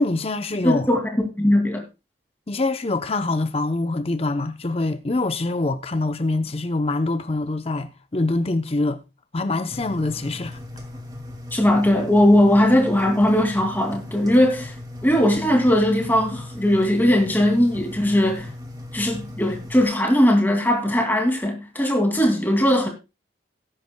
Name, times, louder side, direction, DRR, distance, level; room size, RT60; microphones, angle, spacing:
voice 1, 0.0-0.9 2.5-9.0 9.3-10.6, left 2 dB, 30° left, 0.6 m, -24 dB
voice 2, 0.6-1.8 11.5-14.7 15.0-18.5 18.9-22.9, left 1 dB, 10° left, 2.3 m, -19 dB
Engine, 9.7-19.8, left 1 dB, 20° right, 2.1 m, -37 dB
18.5 x 10.0 x 2.2 m
head